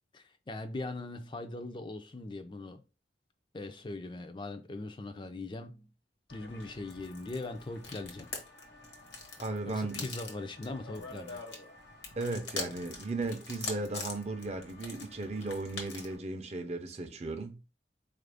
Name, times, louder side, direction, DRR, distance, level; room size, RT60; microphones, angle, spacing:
voice 1, 0.1-2.8 3.5-5.9 6.3-8.3 9.7-11.4, left 2 dB, 25° left, 0.4 m, -40 dB
sound 1, 6.3-16.2, left 3 dB, 80° left, 1.2 m, -44 dB
voice 2, 9.4-10.1 12.2-17.6, right 2 dB, 35° right, 0.5 m, -36 dB
4.3 x 2.5 x 3.3 m
head